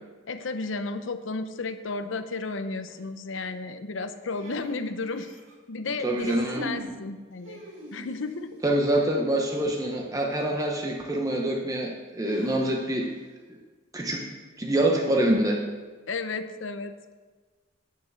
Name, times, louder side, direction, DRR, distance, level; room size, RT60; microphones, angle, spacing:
voice 1, 0.3-5.4 5.7-7.6 7.9-8.6 16.1-17.2, left 3 dB, 85° left, 9 dB, 0.7 m, -33 dB
sound 1, 4.3-5.5 6.1-7.0 7.4-8.4 10.3-10.4 12.2-13.1, right 1 dB, 85° right, 2.4 m, -41 dB
voice 2, 6.0-6.7 8.6-13.1 13.5-13.6 13.9-14.2 14.6-15.6, right 1 dB, 20° right, 0 dB, 0.9 m, -25 dB
9.5 x 6.5 x 7.1 m, 1.4 s
head